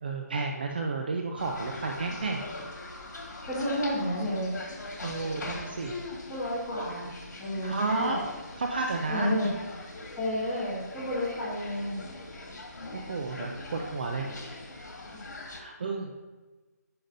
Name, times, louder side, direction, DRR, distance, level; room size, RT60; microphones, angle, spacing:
voice 1, 0.0-2.4 5.0-6.0 7.6-8.2 8.6-9.3 12.9-14.3 15.5-16.1, right 3 dB, 35° right, 2 dB, 0.5 m, -31 dB
sound 1, 1.4-15.6, left 2 dB, 85° left, 1.6 m, -42 dB
voice 2, 3.5-4.5 6.3-7.1 7.4-8.2 9.1-9.5 9.8-12.0, equal, 10° left, -10 dB, 1.7 m, -31 dB
10.5 x 5.8 x 2.6 m, 1.3 s
hypercardioid pair, 170°, 9 cm